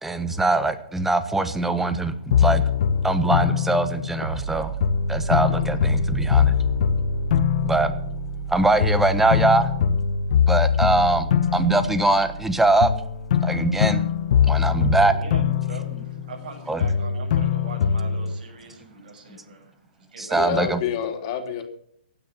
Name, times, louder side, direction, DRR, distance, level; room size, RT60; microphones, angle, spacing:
voice 1, 0.0-2.6 3.0-4.7 5.1-6.6 7.6-7.9 8.5-9.7 10.4-12.9 13.4-14.1 14.4-15.1 16.7-16.9 19.3-19.4 20.2-20.8, right 2 dB, 5° right, 11 dB, 1.2 m, -22 dB
sound 1, 2.3-4.5 4.8-8.5 8.8-12.5 12.8-16.5 16.8-18.4, left 8 dB, 55° left, 1.2 m, -22 dB
sound 2, 4.2-15.6, right 10 dB, 80° right, 1.4 m, -35 dB
voice 2, 15.0-20.8, right 4 dB, 65° right, 2 dB, 7.4 m, -41 dB
voice 3, 20.3-21.6, left 8 dB, 40° left, 6 dB, 3.1 m, -28 dB
16.0 x 9.7 x 6.8 m, 0.63 s
hypercardioid pair, 150°, 5 cm